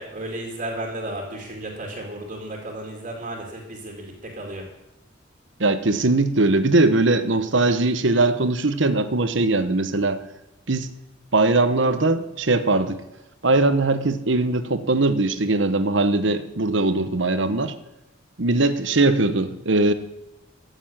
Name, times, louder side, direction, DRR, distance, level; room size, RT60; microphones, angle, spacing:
voice 1, 0.0-4.6, right 1 dB, 40° right, -1 dB, 2.4 m, -33 dB
voice 2, 5.6-10.2 10.7-10.9 11.3-13.0 13.4-17.7 18.4-19.9, right 2 dB, 65° right, 11 dB, 1.1 m, -20 dB
15.0 x 7.2 x 8.8 m, 0.91 s
head